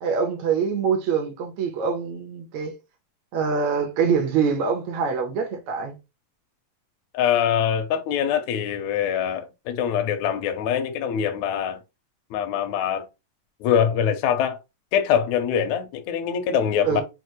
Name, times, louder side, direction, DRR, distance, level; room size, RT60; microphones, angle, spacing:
voice 1, 0.0-2.8 3.3-6.0 16.8-17.0, right 6 dB, 70° right, 1.8 m, -24 dB
voice 2, 7.1-11.8 12.3-13.1 13.6-14.6 14.9-17.0, left 8 dB, 85° left, 1.7 m, -23 dB
6.3 x 2.2 x 3.1 m
omnidirectional pair, 4.1 m